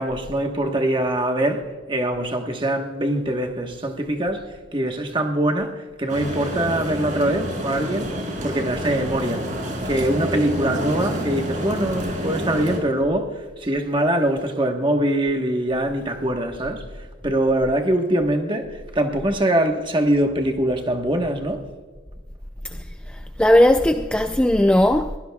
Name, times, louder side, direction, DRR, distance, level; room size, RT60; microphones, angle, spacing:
voice 1, 0.0-4.4 4.7-8.1 8.4-9.5 9.8-16.9 17.2-21.6, right 1 dB, 25° right, 1.2 m, -23 dB
sound 1, 6.1-12.8, equal, 40° right, 3.6 m, -28 dB
voice 2, 22.7-25.2, left 1 dB, 5° left, 0.3 m, -18 dB
22.0 x 17.0 x 2.3 m
head